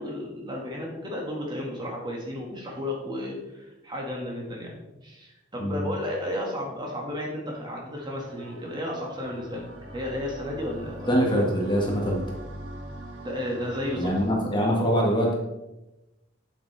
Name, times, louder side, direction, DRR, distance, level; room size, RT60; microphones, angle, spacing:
voice 1, 0.0-9.6 9.9-11.5 13.2-14.1, left 1 dB, 20° right, -2 dB, 1.9 m, -33 dB
voice 2, 5.6-5.9 11.1-12.2 14.0-15.3, equal, 25° left, -2 dB, 1.8 m, -23 dB
sound 1, 8.3-14.3, right 1 dB, 75° right, 1.4 m, -42 dB
8.9 x 8.4 x 3.4 m, 0.97 s
head